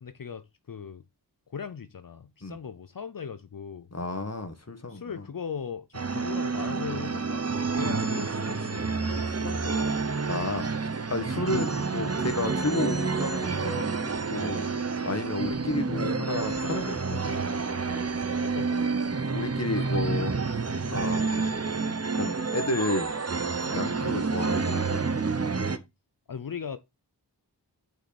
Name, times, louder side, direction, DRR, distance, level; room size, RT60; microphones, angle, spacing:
voice 1, 0.0-1.1 1.5-3.9 4.9-7.4 7.7-10.0 14.5-14.7 18.4-19.1 23.6-23.8 26.3-26.8, left 6 dB, 55° left, 0.6 m, -39 dB
voice 2, 3.9-5.0 10.3-10.7 11.1-14.7 15.0-17.2 19.3-20.3 20.9-21.5 22.1-23.1 23.7-25.0, left 2 dB, 40° left, 1.5 m, -31 dB
sound 1, 5.9-25.8, right 4 dB, 35° right, 0.8 m, -29 dB
6.3 x 5.4 x 4.1 m
wide cardioid pair, 50°, 41 cm